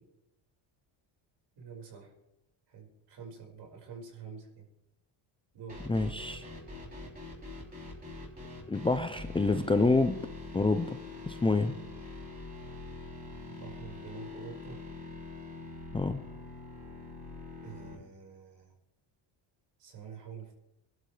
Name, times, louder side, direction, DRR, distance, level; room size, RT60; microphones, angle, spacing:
voice 1, 1.6-2.1 2.7-4.7 5.5-5.8 13.5-14.8 17.6-18.7 19.8-20.6, right 6 dB, 55° right, 0 dB, 5.2 m, -47 dB
sound 1, 5.7-17.9, left 2 dB, 20° right, 6.4 m, -44 dB
voice 2, 5.8-6.5 8.7-10.2 10.5-11.0 11.3-11.8 15.9-16.2, left 3 dB, 10° left, 9 dB, 0.5 m, -27 dB
24.0 x 12.0 x 3.3 m, 0.89 s
cardioid pair, 140°, 48 cm